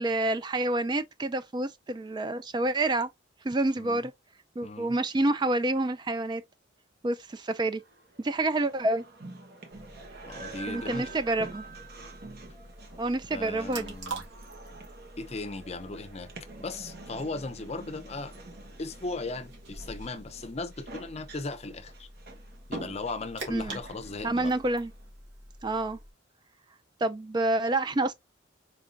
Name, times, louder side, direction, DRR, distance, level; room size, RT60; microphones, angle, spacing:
voice 1, 0.0-3.1 3.4-4.1 4.6-6.4 7.0-7.8 8.2-9.0 10.7-11.6 13.0-13.9 23.5-23.8 24.2-24.9 25.6-26.0 27.0-28.1, right 2 dB, 20° right, 0.3 m, -28 dB
voice 2, 3.8-4.1 4.6-5.0 10.2-11.1 13.3-14.2 15.2-16.3 16.6-18.3 18.8-22.1 22.7-24.5, left 3 dB, 35° left, 0.6 m, -37 dB
sound 1, 7.5-25.1, right 3 dB, 50° right, 1.2 m, -47 dB
sound 2, 9.7-26.1, right 2 dB, 70° right, 2.0 m, -46 dB
4.4 x 3.7 x 2.6 m
head